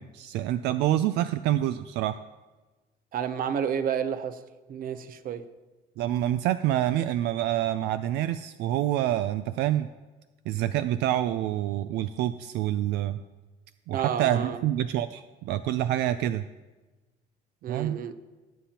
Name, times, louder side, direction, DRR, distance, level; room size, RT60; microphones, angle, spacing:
voice 1, 0.0-2.2 6.0-9.9 10.5-13.2 13.9-16.4 17.7-18.0, right 12 dB, 80° right, 12 dB, 0.4 m, -27 dB
voice 2, 3.1-4.4 4.7-5.4 13.9-14.6 17.6-18.1, right 8 dB, 55° right, 11 dB, 0.8 m, -30 dB
18.5 x 7.5 x 2.9 m, 1.2 s
cardioid pair, 110°, 17 cm